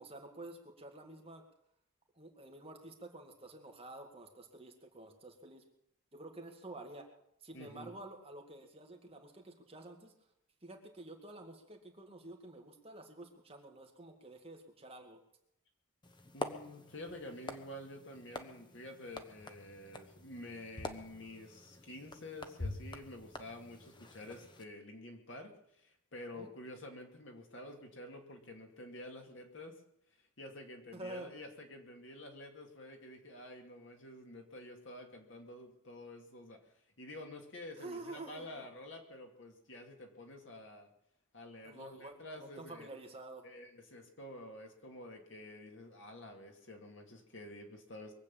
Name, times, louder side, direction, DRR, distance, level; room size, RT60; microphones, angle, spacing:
voice 1, 0.0-1.4 2.2-5.6 6.1-7.1 7.4-10.1 10.6-15.2 26.3-26.5 30.9-31.3 37.8-38.7 41.6-43.5, right 2 dB, 25° right, 1 dB, 2.2 m, -49 dB
voice 2, 7.5-7.9 16.3-29.8 30.4-36.6 37.0-40.9 41.3-42.9 43.4-48.1, left 1 dB, 60° left, 3 dB, 2.4 m, -49 dB
sound 1, 16.0-24.6, left 2 dB, 20° left, 1.0 m, -46 dB
23.0 x 8.3 x 7.0 m, 0.74 s
head